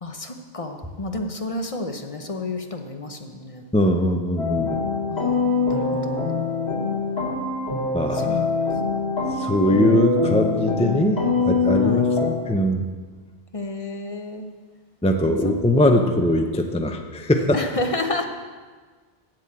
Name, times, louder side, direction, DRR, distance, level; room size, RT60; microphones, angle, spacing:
voice 1, 0.0-3.6 5.1-6.3 8.1-8.4 11.1-11.3 11.8-12.1 13.5-14.5 15.4-15.5 15.9-16.0 17.5-18.3, left 2 dB, 35° left, 5 dB, 0.8 m, -31 dB
voice 2, 3.7-4.8 7.9-8.4 9.4-12.9 15.0-17.6, left 1 dB, 10° left, 5 dB, 0.4 m, -21 dB
sound 1, 4.4-12.3, left 4 dB, 70° left, 2.7 m, -23 dB
7.6 x 7.6 x 8.6 m, 1.5 s
omnidirectional pair, 1.1 m